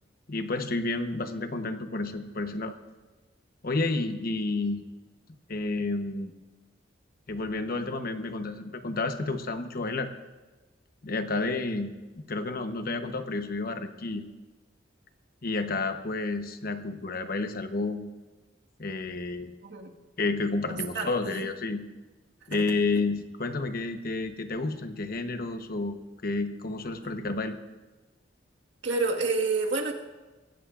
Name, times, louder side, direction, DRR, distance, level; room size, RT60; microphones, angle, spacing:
voice 1, 0.3-2.7 3.6-4.8 5.5-6.3 7.3-10.1 11.0-14.2 15.4-18.0 18.8-19.5 20.2-21.8 22.5-26.0 26.2-27.6, left 3 dB, 55° left, 7 dB, 1.0 m, -30 dB
voice 2, 19.6-19.9 20.7-21.5 22.5-22.6 28.8-29.9, right 4 dB, 85° right, 0 dB, 1.7 m, -29 dB
22.5 x 15.5 x 2.5 m, 1.2 s
head